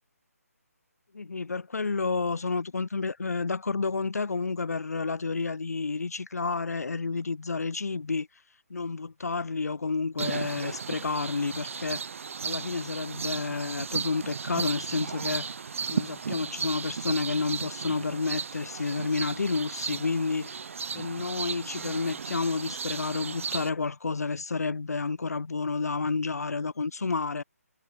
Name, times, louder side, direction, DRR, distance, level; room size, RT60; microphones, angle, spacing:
voice 1, 1.1-8.3 8.7-12.0 12.4-15.5 15.9-20.6 20.9-27.4, left 4 dB, 75° left, 2.5 m, -30 dB
sound 1, 10.2-23.7, right 6 dB, 55° right, 3.5 m, -35 dB
figure-of-eight pair, 160°, 9 cm